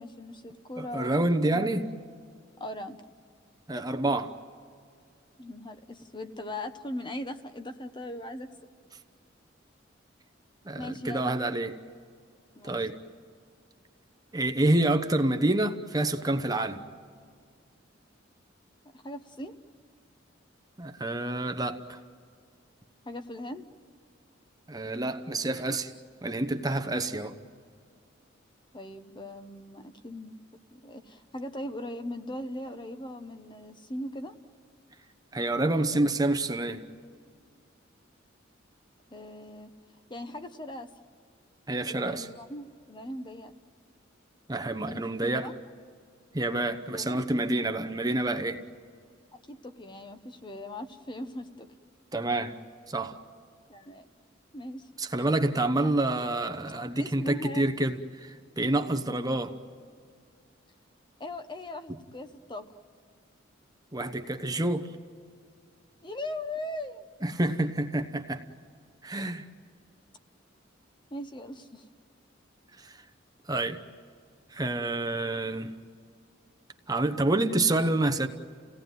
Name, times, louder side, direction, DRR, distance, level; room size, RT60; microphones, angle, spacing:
voice 1, 0.0-1.1 1.5-1.7 2.6-3.0 5.4-8.5 10.8-11.4 12.5-12.8 18.9-19.6 23.0-23.6 28.7-30.4 30.7-34.4 39.1-39.7 40.1-40.9 41.9-43.5 44.8-45.6 46.9-47.2 49.5-51.7 53.7-54.1 54.5-54.9 55.8-55.9 56.9-57.7 58.9-59.4 61.2-62.7 66.0-67.0 71.1-71.8, left 1 dB, 25° left, 8 dB, 1.0 m, -39 dB
voice 2, 0.8-1.9 3.7-4.3 10.6-11.7 12.6-12.9 14.3-16.8 20.8-22.0 24.7-25.9 26.2-27.3 35.3-36.8 41.7-42.3 44.5-45.5 46.3-48.6 52.1-52.5 52.9-53.2 55.0-59.5 63.9-64.9 67.2-68.4 69.0-69.5 72.8-73.0 73.5-73.8 74.5-75.7 76.9-78.3, right 2 dB, 20° right, 7 dB, 1.0 m, -28 dB
30.0 x 17.5 x 9.3 m, 2.2 s
head